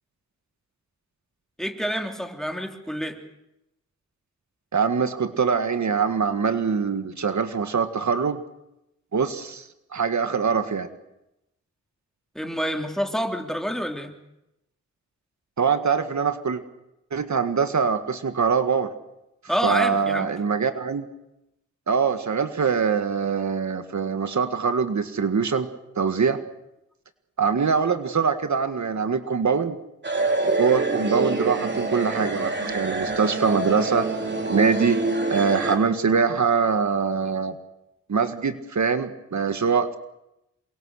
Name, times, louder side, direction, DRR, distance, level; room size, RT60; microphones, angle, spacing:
voice 1, 1.6-3.2 12.3-14.2 19.5-20.3, equal, ahead, 4 dB, 3.3 m, -28 dB
voice 2, 4.7-8.4 9.1-9.7 9.9-10.9 15.6-16.6 17.1-18.9 19.6-21.1 21.9-25.7 26.0-26.4 27.4-29.8 30.4-34.1 34.5-35.0 35.3-37.6 38.1-40.0, right 6 dB, 70° right, 9 dB, 1.9 m, -23 dB
sound 1, 30.0-35.8, right 2 dB, 40° right, 4.6 m, -26 dB
28.0 x 24.0 x 6.6 m, 0.87 s
wide cardioid pair, 75°, 30 cm